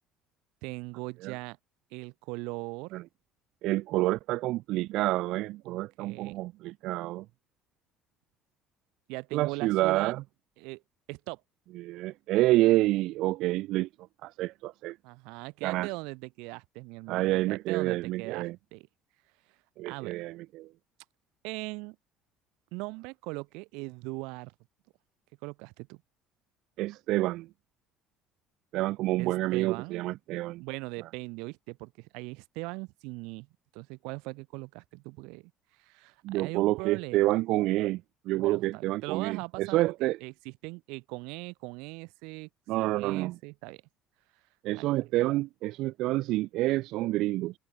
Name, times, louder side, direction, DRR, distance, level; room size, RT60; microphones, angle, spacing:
voice 1, 0.6-1.6 1.9-2.9 5.6-6.4 9.1-10.1 10.6-10.8 11.1-11.4 15.0-18.9 19.8-20.1 21.4-22.0 22.7-24.5 25.4-26.0 29.2-30.1 30.6-33.5 33.7-35.5 35.8-37.2 38.4-42.5 42.8-43.8 44.7-44.9, right 27 dB, 85° right, 5.0 m, -40 dB
voice 2, 3.6-7.2 9.3-10.2 11.8-13.9 14.2-15.0 15.6-15.9 17.1-18.6 19.8-20.7 26.8-27.5 28.7-30.6 36.2-38.0 38.3-40.2 42.7-43.4 44.6-47.6, right 17 dB, 60° right, 0.6 m, -28 dB
cardioid pair, 165°, 0 cm